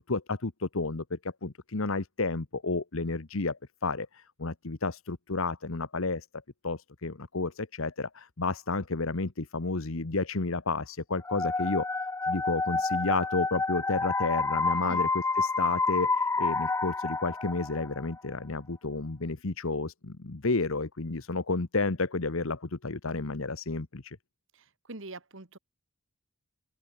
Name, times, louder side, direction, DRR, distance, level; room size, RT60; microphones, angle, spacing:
voice 1, 0.0-6.3 6.6-24.2, left 3 dB, 65° left, 1.2 m, -31 dB
sound 1, 11.3-18.1, left 3 dB, 10° left, 0.3 m, -29 dB
voice 2, 24.5-25.6, right 2 dB, 60° right, 1.7 m, -43 dB
open air
head